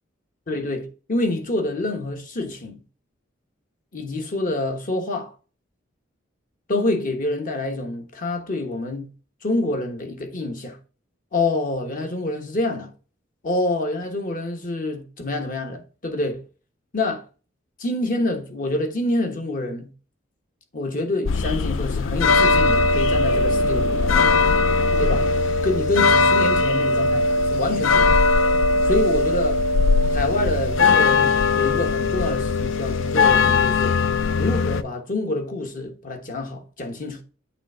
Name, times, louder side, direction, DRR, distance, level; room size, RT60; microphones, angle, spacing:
voice 1, 0.5-2.8 3.9-5.3 6.7-9.1 9.4-10.8 11.3-12.9 13.4-16.4 16.9-17.2 17.8-19.9 20.7-24.3 25.0-25.3 25.6-28.3 28.8-29.6 30.1-34.0 34.3-37.2, left 2 dB, 45° left, 1.2 m, -27 dB
sound 1, 21.3-34.8, left 3 dB, 70° left, 0.4 m, -19 dB
8.2 x 3.3 x 5.5 m
head